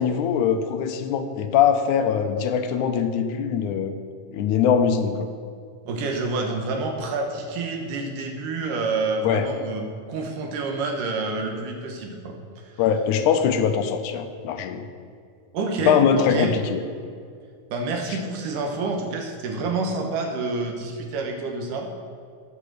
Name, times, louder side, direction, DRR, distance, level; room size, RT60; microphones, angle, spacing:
voice 1, 0.0-4.0 4.3-5.3 9.2-9.5 12.8-14.9 15.8-16.8, left 7 dB, 80° left, 8 dB, 2.0 m, -22 dB
voice 2, 5.9-12.4 12.6-12.8 15.5-16.6 17.7-21.9, right 3 dB, 80° right, 3 dB, 2.6 m, -28 dB
9.9 x 5.8 x 6.6 m, 2.2 s
omnidirectional pair, 3.7 m